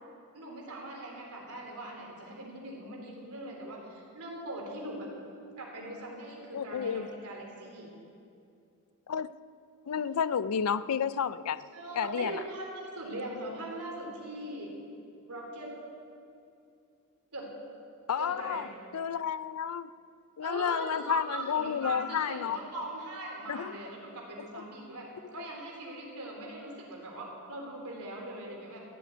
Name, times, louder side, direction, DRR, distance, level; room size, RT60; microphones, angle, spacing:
voice 1, 0.3-5.1 5.6-7.9 11.7-14.7 15.3-15.7 17.3-17.5 18.2-18.7 20.4-25.1 25.3-28.8, right 1 dB, 85° right, -1 dB, 3.8 m, -40 dB
voice 2, 6.5-7.1 9.1-9.3 9.9-11.6 12.0-12.4 18.1-18.7 18.9-19.9 20.4-22.6 23.5-23.7 25.4-25.5, left 7 dB, 75° left, 16 dB, 0.4 m, -31 dB
15.5 x 8.5 x 9.5 m, 2.6 s
head